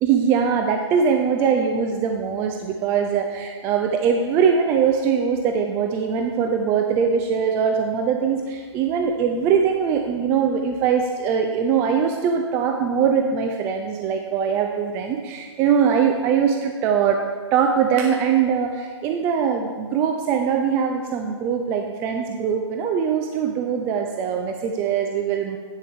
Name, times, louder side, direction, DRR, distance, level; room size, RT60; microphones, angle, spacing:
voice 1, 0.0-17.2 17.5-25.6, right 7 dB, 15° right, 3 dB, 0.4 m, -22 dB
10.5 x 8.3 x 3.4 m, 1.6 s
figure-of-eight pair, 130°, 15 cm